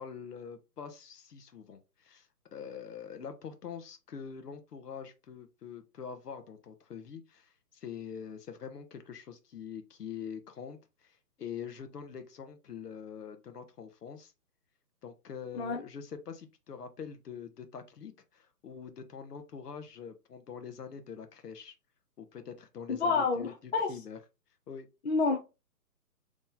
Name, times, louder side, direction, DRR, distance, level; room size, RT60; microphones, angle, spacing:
voice 1, 0.0-14.3 15.0-21.7 22.2-24.2 24.7-24.9, left 7 dB, 70° left, 0.9 m, -44 dB
voice 2, 22.9-23.9 25.0-25.4, left 4 dB, 40° left, 0.6 m, -28 dB
3.8 x 3.1 x 2.7 m
hypercardioid pair, 160°, 49 cm